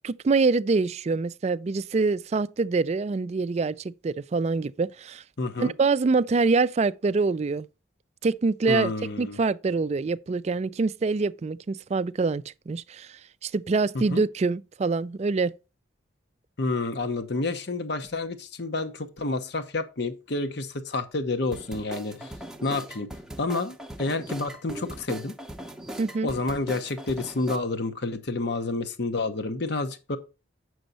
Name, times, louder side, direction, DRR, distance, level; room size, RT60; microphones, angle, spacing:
voice 1, 0.0-5.2 5.6-7.7 8.2-8.9 9.2-15.5 26.0-26.3, right 4 dB, 35° right, 0.3 m, -25 dB
voice 2, 5.4-5.7 8.7-9.4 13.9-14.2 16.6-22.3 22.6-23.1 23.4-25.3 26.2-30.2, left 3 dB, 55° left, 0.9 m, -29 dB
sound 1, 21.5-27.6, right 1 dB, 5° right, 0.7 m, -40 dB
8.0 x 6.2 x 4.0 m
head